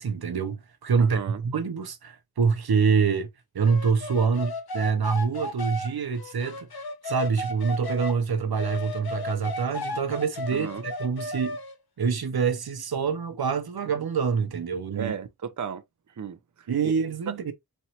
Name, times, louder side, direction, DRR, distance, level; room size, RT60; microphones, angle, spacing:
voice 1, 0.0-3.3 3.5-6.7 7.0-11.6 12.0-15.1 16.7-17.5, right 5 dB, 80° right, 0.8 m, -26 dB
voice 2, 1.0-1.4 10.5-10.8 14.9-15.8 16.1-16.9, right 7 dB, 55° right, 0.6 m, -35 dB
sound 1, 3.6-8.2 8.6-11.8, left 2 dB, 80° left, 0.9 m, -34 dB
4.4 x 2.9 x 2.9 m
wide cardioid pair, 70°, 37 cm